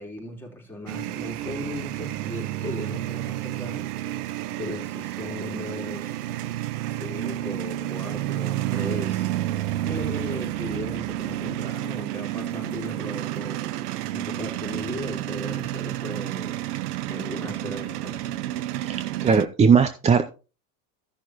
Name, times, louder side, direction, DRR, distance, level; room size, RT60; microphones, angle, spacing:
voice 1, 0.0-4.0 4.6-6.1 6.9-9.3 9.8-13.8 14.1-16.7 17.1-18.4, left 1 dB, 5° left, 3.7 m, -37 dB
sound 1, 0.9-19.5, right 14 dB, 80° right, 0.8 m, -30 dB
voice 2, 18.8-20.2, right 6 dB, 15° right, 0.4 m, -19 dB
15.0 x 6.4 x 3.0 m
supercardioid pair, 105°, 46 cm